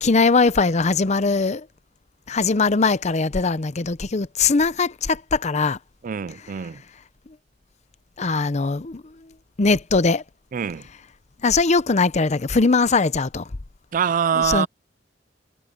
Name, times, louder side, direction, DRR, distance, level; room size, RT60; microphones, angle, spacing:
voice 1, 0.0-1.6 2.3-5.8 8.2-9.0 9.6-10.2 11.4-13.4 14.4-14.7, left 4 dB, 40° left, 0.7 m, -20 dB
voice 2, 6.0-6.8 10.5-10.8 13.9-14.7, right 7 dB, 45° right, 0.4 m, -24 dB
head